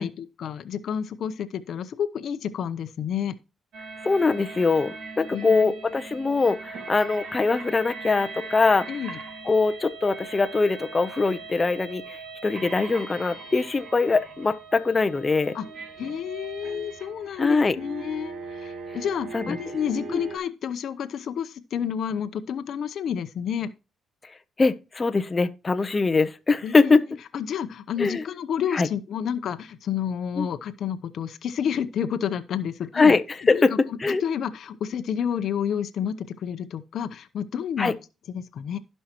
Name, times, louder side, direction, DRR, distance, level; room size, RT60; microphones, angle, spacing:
voice 1, 0.0-3.4 5.3-5.7 8.9-9.2 15.5-15.6 16.0-23.7 26.6-27.0 27.3-33.1 33.5-33.6 34.1-37.9 38.3-38.8, left 8 dB, 65° left, 0.8 m, -30 dB
sound 1, 3.7-20.4, right 4 dB, 70° right, 2.8 m, -40 dB
voice 2, 4.0-8.9 9.4-15.6 17.4-17.8 19.3-19.6 20.1-20.2 24.6-27.0 28.0-28.2 28.7-28.9 30.4-30.5 32.9-33.7 34.0-34.2 37.8-37.9, left 4 dB, 25° left, 0.7 m, -22 dB
16.0 x 5.5 x 3.0 m
cardioid pair, 90°, 0 cm